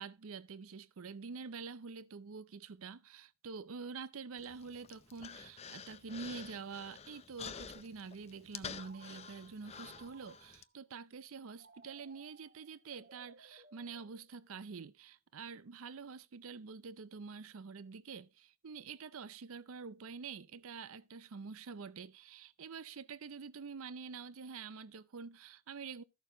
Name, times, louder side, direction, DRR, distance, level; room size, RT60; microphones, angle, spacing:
voice 1, 0.0-26.0, right 5 dB, 70° right, 0.5 m, -47 dB
Human voice, 4.4-10.6, left 7 dB, 30° left, 0.5 m, -49 dB
Telephone, 8.7-10.7 11.6-14.6, right 4 dB, 45° right, 1.0 m, -62 dB
14.0 x 6.8 x 3.8 m
head